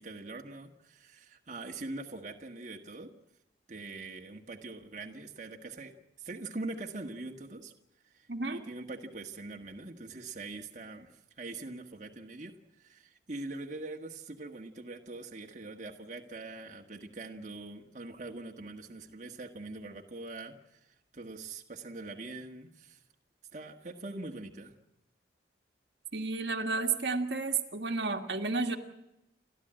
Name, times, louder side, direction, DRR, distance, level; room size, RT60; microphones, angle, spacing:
voice 1, 0.0-3.1 3.7-7.7 8.1-23.0 23.5-24.7, right 2 dB, 40° right, 2 dB, 1.6 m, -43 dB
voice 2, 8.3-8.6 26.1-28.8, right 4 dB, 70° right, 4 dB, 1.7 m, -31 dB
29.5 x 12.5 x 8.9 m, 0.92 s
head